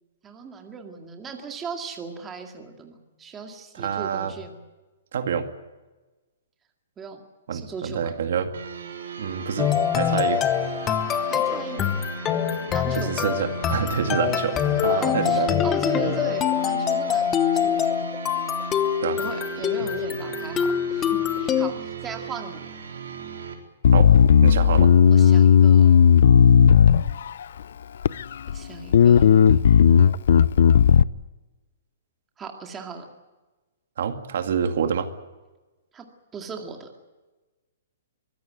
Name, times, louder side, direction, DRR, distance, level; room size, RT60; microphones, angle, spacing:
voice 1, 0.2-4.6 7.0-7.2 7.5-8.1 11.2-11.9 12.7-13.2 14.9-18.1 19.2-22.6 25.1-26.0 28.5-29.7 32.4-33.1 35.9-36.1 36.3-36.9, right 5 dB, 10° right, 3 dB, 2.1 m, -38 dB
voice 2, 3.7-4.3 5.1-5.5 7.5-8.5 9.2-10.4 12.9-15.6 19.0-19.2 23.9-24.1 24.4-24.9 34.0-35.1, right 7 dB, 65° right, 7 dB, 2.2 m, -27 dB
sound 1, 8.5-23.5, right 5 dB, 90° right, 4.3 m, -36 dB
sound 2, 9.6-21.7, left 9 dB, 15° left, 1.0 m, -24 dB
Bass guitar, 23.8-27.4 28.0-28.6 28.9-31.0, left 8 dB, 65° left, 0.7 m, -14 dB
23.5 x 15.5 x 9.3 m, 1.2 s
hypercardioid pair, 165°, 0 cm